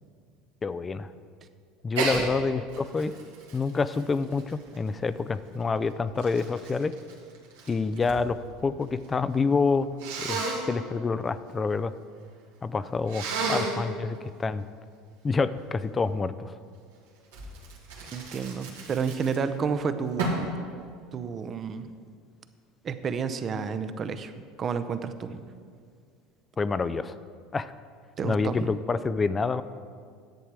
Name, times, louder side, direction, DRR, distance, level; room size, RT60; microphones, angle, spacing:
voice 1, 0.6-1.1 1.8-3.1 3.5-6.9 7.7-9.9 10.2-10.4 10.7-11.9 12.6-14.6 15.2-16.5 26.6-27.2 27.5-27.7 28.2-29.6, left 4 dB, 25° left, 14 dB, 0.4 m, -27 dB
Sneeze, 1.9-2.2 2.7-5.1 5.8-8.2 8.5-9.1 10.0-10.6 13.1-13.8 17.3-19.6 20.2-20.5, right 3 dB, 85° right, 1.9 m, -32 dB
voice 2, 18.1-20.4 21.1-21.9 22.8-25.4 28.2-28.7, right 6 dB, 35° right, 10 dB, 0.7 m, -31 dB
10.5 x 7.9 x 4.8 m, 2.1 s
hypercardioid pair, 90°, 0 cm